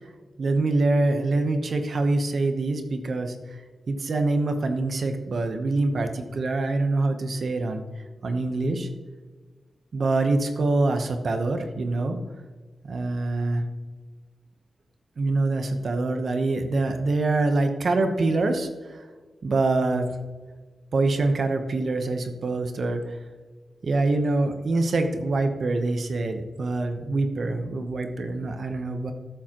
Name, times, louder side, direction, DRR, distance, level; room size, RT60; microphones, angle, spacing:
voice 1, 0.4-3.6 3.9-7.8 8.2-8.9 9.9-12.2 12.8-13.6 15.2-19.1 19.4-20.0 20.9-23.0 23.8-29.1, right 2 dB, 55° right, 6 dB, 0.9 m, -25 dB
13.0 x 7.1 x 3.0 m, 1.3 s
wide cardioid pair, 145°, 0 cm